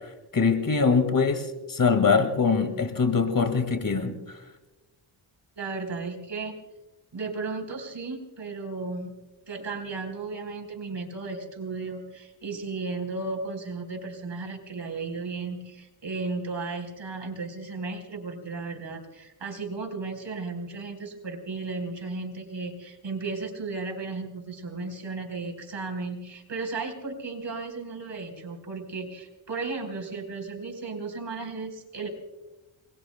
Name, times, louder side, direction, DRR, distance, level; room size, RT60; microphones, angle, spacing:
voice 1, 0.3-4.2, left 5 dB, 40° left, 9 dB, 2.1 m, -23 dB
voice 2, 5.6-6.5 7.1-9.1 9.5-32.1, right 3 dB, 60° right, 3 dB, 4.3 m, -35 dB
28.5 x 22.0 x 2.2 m, 1.1 s
cardioid pair, 70°, 49 cm